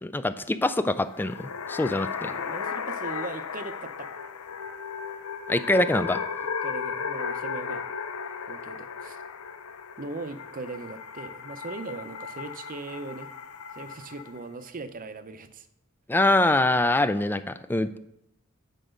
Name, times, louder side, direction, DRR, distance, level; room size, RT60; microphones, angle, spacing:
voice 1, 0.0-2.3 5.5-6.2 16.1-17.9, left 2 dB, 10° left, 12 dB, 0.3 m, -24 dB
sound 1, 1.0-14.4, left 6 dB, 80° left, 0.6 m, -35 dB
voice 2, 2.3-4.1 6.6-7.9 8.4-9.2 10.0-13.3 13.7-15.7, right 3 dB, 40° right, 10 dB, 0.7 m, -39 dB
9.0 x 5.0 x 6.4 m, 0.81 s
head